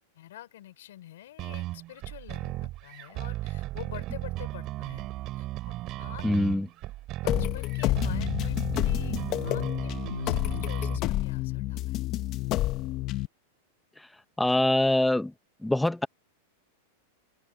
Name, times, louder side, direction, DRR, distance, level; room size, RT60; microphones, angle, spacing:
voice 1, 0.2-5.1 5.3-5.5 6.0-6.3 7.2-12.0, left 13 dB, 75° left, 5.2 m, -47 dB
sound 1, 1.4-11.0, right 17 dB, 35° right, 4.6 m, -36 dB
voice 2, 6.2-6.7 14.4-15.3 15.6-16.1, left 1 dB, 5° left, 0.7 m, -24 dB
sound 2, 7.3-13.3, left 16 dB, 35° left, 0.8 m, -29 dB
supercardioid pair, 155°, 0 cm